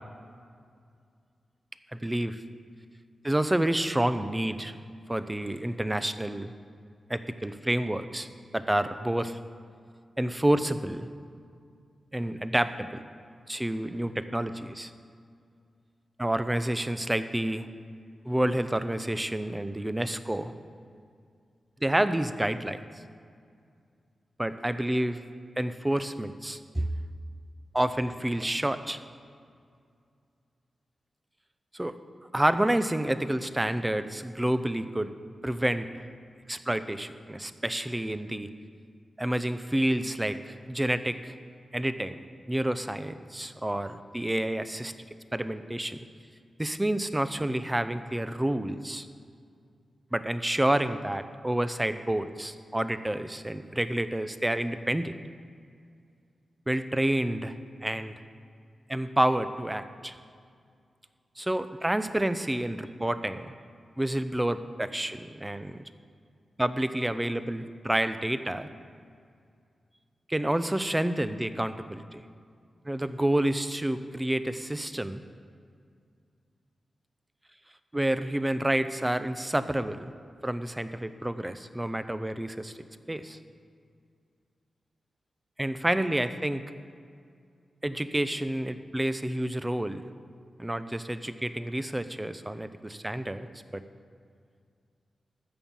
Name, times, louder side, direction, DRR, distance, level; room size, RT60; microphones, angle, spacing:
voice 1, 1.9-2.4 3.2-4.7 5.1-6.5 7.1-8.3 8.5-9.4 10.2-11.1 12.1-13.0 13.5-14.9 16.2-17.7 18.2-20.5 21.8-22.8 24.4-25.2 25.6-26.9 27.7-29.0 31.7-32.0 32.3-35.1 35.4-35.9 36.5-38.5 39.2-41.4 41.7-42.2 42.5-44.9 45.3-46.0 46.6-49.1 50.1-55.1 56.7-57.5 57.8-58.1 58.9-60.2 61.4-63.5 64.0-65.8 66.6-68.7 70.3-72.3 72.9-75.2 77.9-80.1 80.4-82.8 83.1-83.4 85.6-86.6 87.8-90.1 90.6-93.5 93.7-93.8, right 1 dB, 15° right, 11 dB, 0.5 m, -29 dB
13.5 x 5.4 x 7.4 m, 2.3 s
wide cardioid pair, 95°, 0 cm